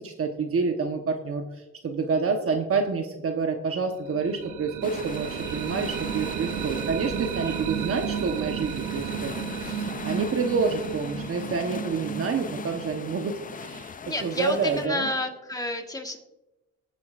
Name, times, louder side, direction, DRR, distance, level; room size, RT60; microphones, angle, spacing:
voice 1, 0.0-1.4 1.8-9.3 9.6-13.9 14.2-15.1, right 5 dB, 50° right, 4 dB, 1.1 m, -28 dB
sound 1, 4.0-13.8, right 9 dB, 90° right, 0.9 m, -33 dB
sound 2, 4.8-14.9, left 6 dB, 30° left, 0.5 m, -40 dB
voice 2, 5.3-5.6 7.3-7.6 14.0-16.2, left 1 dB, 10° left, 3 dB, 1.6 m, -31 dB
19.5 x 8.2 x 2.5 m, 1.0 s
cardioid pair, 90°, 30 cm